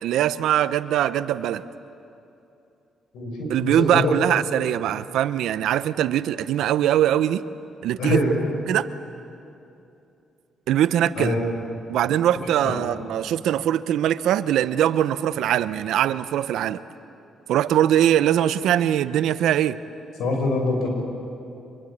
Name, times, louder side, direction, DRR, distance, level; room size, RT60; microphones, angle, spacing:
voice 1, 0.0-1.6 3.5-7.4 7.8-8.2 8.7-8.9 10.7-11.4 11.9-16.8 17.5-19.8, right 11 dB, 80° right, 14 dB, 0.8 m, -22 dB
voice 2, 3.1-4.1 8.0-8.4 11.1-11.4 12.6-12.8 20.2-20.9, left 2 dB, 85° left, 1 dB, 6.3 m, -24 dB
25.0 x 23.0 x 8.8 m, 2.7 s
cardioid pair, 90°, 0 cm